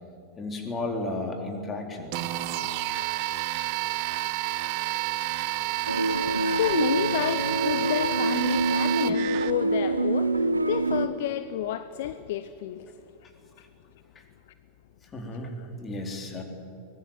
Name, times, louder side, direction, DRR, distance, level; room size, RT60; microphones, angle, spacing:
voice 1, 0.4-2.3 14.1-14.2 15.0-16.4, left 2 dB, 20° left, 3 dB, 4.1 m, -34 dB
sound 1, 2.1-9.5, right 17 dB, 45° right, 1.0 m, -30 dB
sound 2, 5.9-11.1, right 2 dB, 80° right, 0.9 m, -26 dB
voice 2, 6.4-12.9 15.6-15.7, left 12 dB, 50° left, 13 dB, 0.8 m, -30 dB
24.0 x 20.0 x 9.2 m, 2.7 s
figure-of-eight pair, 90°, 0 cm